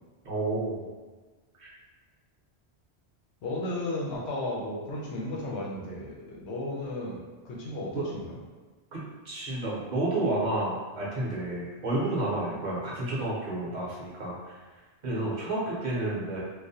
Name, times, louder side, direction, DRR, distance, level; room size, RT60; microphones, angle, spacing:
voice 1, 0.2-0.8 1.6-1.7 7.9-8.0 8.9-14.4 15.0-16.4, right 2 dB, 50° right, -6 dB, 0.7 m, -30 dB
voice 2, 3.4-7.2 7.4-8.4 12.5-12.7 15.2-15.3, left 1 dB, 80° left, -3 dB, 0.9 m, -34 dB
2.4 x 2.0 x 2.6 m, 1.3 s
omnidirectional pair, 1.1 m